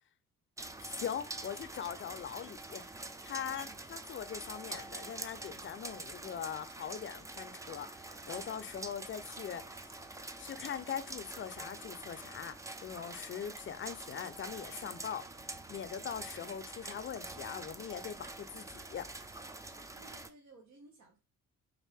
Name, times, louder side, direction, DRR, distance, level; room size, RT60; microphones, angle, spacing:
sound 1, 0.6-20.3, right 2 dB, 10° right, 0.3 m, -46 dB
voice 1, 0.8-2.8 3.2-9.8 10.4-15.2 15.7-19.1, left 8 dB, 40° left, 0.5 m, -41 dB
voice 2, 3.4-3.8 19.7-21.2, right 3 dB, 70° right, 1.1 m, -60 dB
4.0 x 2.6 x 3.5 m
cardioid pair, 90°, 30 cm